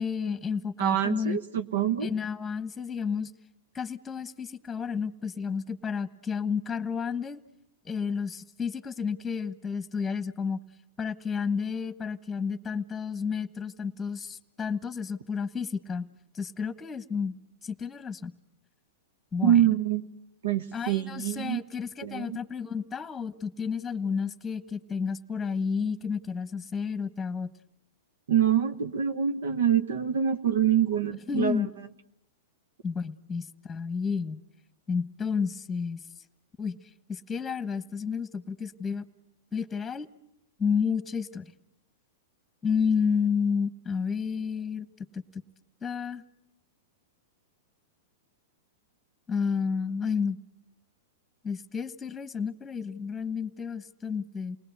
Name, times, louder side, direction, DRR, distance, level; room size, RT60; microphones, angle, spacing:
voice 1, 0.0-1.4 2.0-3.3 3.7-7.4 7.8-10.6 11.0-16.1 16.3-18.3 19.3-19.8 20.7-27.5 31.3-31.7 32.8-34.4 34.9-36.0 36.6-36.8 37.1-39.1 39.5-40.1 40.6-41.5 42.6-45.4 45.8-46.2 49.3-50.4 51.4-54.6, left 6 dB, 15° left, 15 dB, 1.2 m, -31 dB
voice 2, 0.8-2.1 19.4-20.1 20.4-21.6 22.0-22.4 28.3-31.7, right 10 dB, 75° right, 9 dB, 1.1 m, -25 dB
29.0 x 19.5 x 8.0 m, 0.81 s
hypercardioid pair, 120°, 0 cm